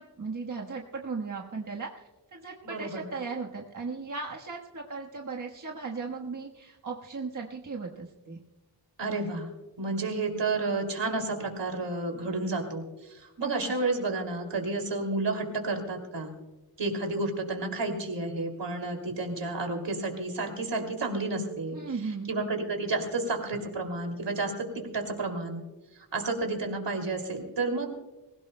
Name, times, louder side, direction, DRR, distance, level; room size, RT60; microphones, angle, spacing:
voice 1, 0.0-8.4 13.4-13.5 21.7-22.3, right 4 dB, 45° right, -1 dB, 1.4 m, -37 dB
voice 2, 2.6-3.0 9.0-9.5 9.8-12.8 13.1-16.3 16.8-21.8 22.3-25.6 26.1-27.9, right 3 dB, 75° right, 4 dB, 2.7 m, -31 dB
25.5 x 16.5 x 2.2 m, 1.1 s
wide cardioid pair, 85°, 43 cm